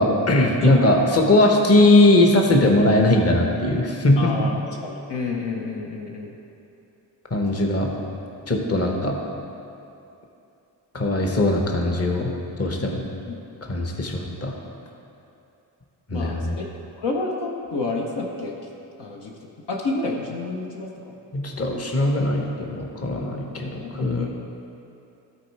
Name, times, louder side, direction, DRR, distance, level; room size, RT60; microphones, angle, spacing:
voice 1, 0.0-4.3 7.3-7.9 8.5-9.2 10.9-12.3 12.6-13.0 13.7-14.5 16.1-16.5 21.3-24.3, left 1 dB, 35° left, 1 dB, 1.2 m, -20 dB
voice 2, 4.2-6.3 7.5-7.6 16.1-16.6 17.0-18.5 19.0-19.3 19.7-21.1 23.8-24.3, left 3 dB, 65° left, -1 dB, 1.0 m, -29 dB
12.0 x 4.1 x 4.7 m, 2.7 s
cardioid pair, 50°, 45 cm